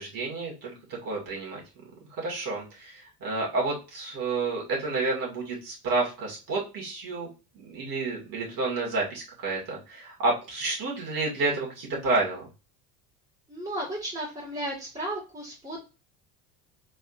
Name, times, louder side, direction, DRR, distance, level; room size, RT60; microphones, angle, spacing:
voice 1, 0.0-1.6 2.2-7.3 7.6-12.5, right 3 dB, 45° right, -3 dB, 2.4 m, -30 dB
voice 2, 13.5-15.8, right 1 dB, 15° right, -6 dB, 2.1 m, -34 dB
4.2 x 3.5 x 2.6 m, 0.31 s
figure-of-eight pair, 70°, 46 cm